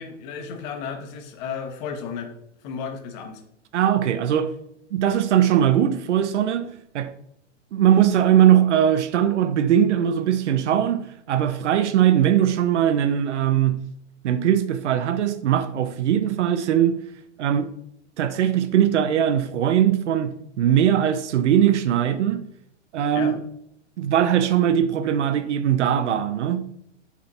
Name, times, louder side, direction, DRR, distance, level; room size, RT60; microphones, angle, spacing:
voice 1, 0.0-2.3 2.6-3.4 23.1-23.4, left 6 dB, 35° left, 1.2 m, -33 dB
voice 2, 3.7-4.6 4.9-7.1 7.7-13.8 14.2-17.0 17.4-17.7 18.2-22.4 22.9-23.3 24.0-26.6, right 10 dB, 70° right, 0.9 m, -20 dB
7.0 x 5.1 x 4.2 m
hypercardioid pair, 140°, 37 cm